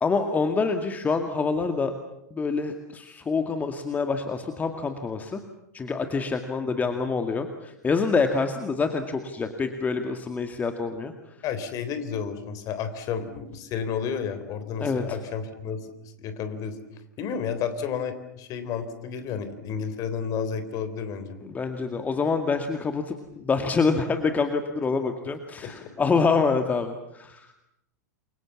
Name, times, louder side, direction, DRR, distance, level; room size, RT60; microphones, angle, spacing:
voice 1, 0.0-1.9 2.3-5.4 5.7-11.1 14.8-15.2 21.4-27.5, left 4 dB, 15° left, 6 dB, 2.1 m, -26 dB
voice 2, 11.4-15.9 16.2-16.8 17.2-21.4 25.6-25.9, left 7 dB, 35° left, 10 dB, 3.9 m, -31 dB
29.0 x 24.0 x 7.3 m, 0.84 s
figure-of-eight pair, 95°, 9 cm